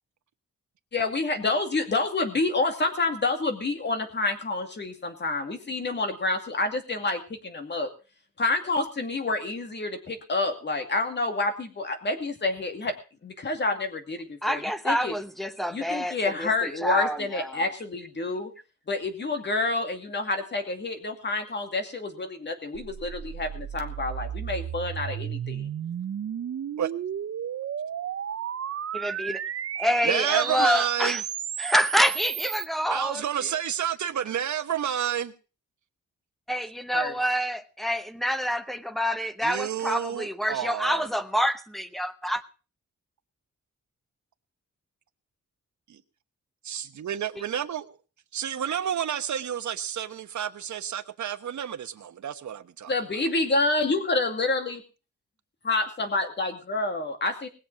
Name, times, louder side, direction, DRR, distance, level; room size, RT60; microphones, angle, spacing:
voice 1, 0.9-7.9 8.4-12.9 13.2-15.1 15.7-18.5 18.9-25.7 36.9-37.2 52.9-54.8 55.6-57.5, left 3 dB, 35° left, 2.5 m, -28 dB
voice 2, 14.4-17.5 28.9-29.4 29.8-31.2 31.6-33.2 36.5-42.4, equal, ahead, 0.9 m, -27 dB
sound 1, 22.7-32.7, right 9 dB, 55° right, 0.7 m, -33 dB
voice 3, 30.0-31.2 32.9-35.3 39.4-41.1 45.9-46.0 46.6-47.9 48.3-52.9, right 9 dB, 80° right, 1.2 m, -30 dB
20.5 x 7.3 x 6.2 m
wide cardioid pair, 170°, 29 cm